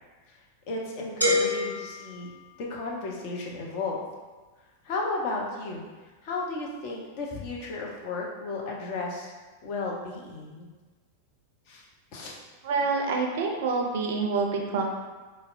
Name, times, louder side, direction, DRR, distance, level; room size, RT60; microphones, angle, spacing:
voice 1, 0.7-2.3 2.6-4.0 4.8-5.8 6.2-9.3 9.6-10.7 11.7-11.8 12.1-12.4, left 3 dB, 45° left, -2 dB, 0.6 m, -34 dB
sound 1, 1.2-3.1, left 2 dB, 90° left, 0.5 m, -28 dB
voice 2, 12.6-14.8, right 4 dB, 55° right, 2 dB, 0.4 m, -27 dB
4.1 x 2.0 x 2.4 m, 1.3 s
figure-of-eight pair, 90°, 0 cm